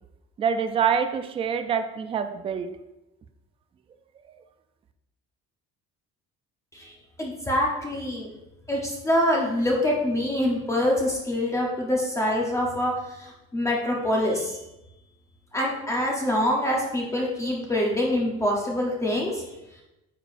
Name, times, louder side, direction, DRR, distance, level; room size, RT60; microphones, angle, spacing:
voice 1, 0.4-2.7 4.3-4.4, right 7 dB, 20° right, 8 dB, 0.3 m, -26 dB
voice 2, 7.2-8.3 8.7-14.6 15.5-19.4, left 1 dB, 10° left, -2 dB, 0.8 m, -25 dB
8.8 x 6.9 x 2.5 m, 0.94 s
cardioid pair, 175°, 29 cm